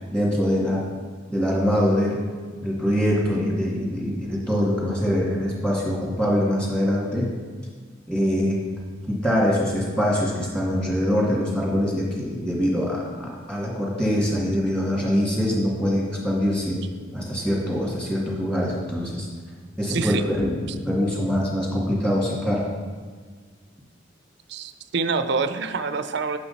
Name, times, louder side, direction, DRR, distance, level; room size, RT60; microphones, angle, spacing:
voice 1, 0.1-0.8 1.3-2.2 2.6-7.3 8.1-8.6 9.1-16.8 17.1-19.3 19.8-22.6, equal, 5° left, -4 dB, 2.2 m, -23 dB
voice 2, 19.9-20.2 24.5-26.4, right 4 dB, 60° right, 9 dB, 0.5 m, -26 dB
8.8 x 6.3 x 4.2 m, 1.6 s
head